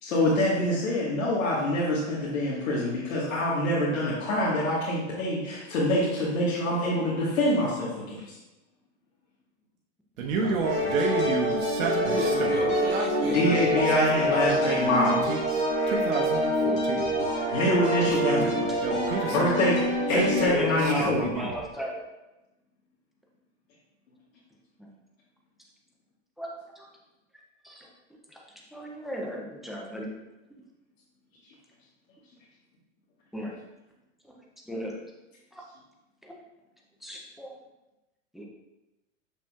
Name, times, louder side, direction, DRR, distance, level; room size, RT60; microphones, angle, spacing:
voice 1, 0.0-8.4 13.3-15.3 17.5-18.5 19.3-19.8 20.1-21.3, left 1 dB, 85° left, -7 dB, 1.7 m, -25 dB
voice 2, 10.2-11.6 12.0-13.6 14.3-14.4, right 4 dB, 30° right, -1 dB, 0.7 m, -34 dB
Male speech man speaking, 10.2-12.7 13.7-15.4 15.9-17.2 18.0-19.5 20.1-21.6, right 4 dB, 75° right, 1.1 m, -31 dB
sound 1, 10.6-20.5, equal, 15° left, 1.9 m, -26 dB
voice 3, 20.1-22.0 26.4-26.9 27.6-27.9 28.7-30.1 33.3-33.5 34.7-34.9 37.0-37.5 38.3-38.5, equal, ahead, -2 dB, 0.4 m, -34 dB
6.7 x 6.0 x 2.4 m, 1.0 s
hypercardioid pair, 135°, 40 cm